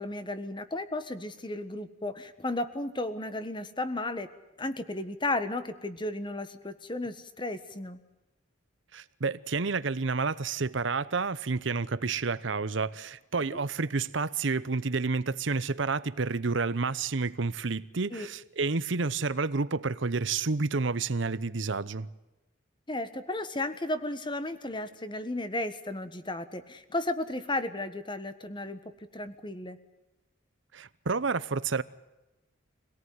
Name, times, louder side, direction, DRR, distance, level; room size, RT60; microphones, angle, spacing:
voice 1, 0.0-4.3 4.6-8.0 13.4-13.6 18.1-18.3 22.9-28.8 29.1-29.8, left 2 dB, 25° left, 1.5 m, -34 dB
voice 2, 8.9-22.1 30.7-31.8, right 4 dB, 70° right, 0.8 m, -30 dB
25.0 x 18.0 x 9.4 m
head